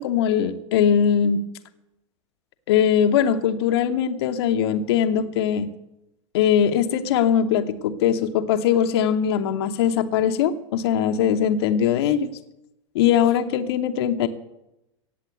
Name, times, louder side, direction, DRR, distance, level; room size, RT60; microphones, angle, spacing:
voice 1, 0.0-1.5 2.7-5.7 6.3-12.4 12.9-14.3, left 8 dB, 50° left, 8 dB, 0.9 m, -21 dB
17.0 x 7.6 x 8.1 m, 0.90 s
figure-of-eight pair, 90°, 17 cm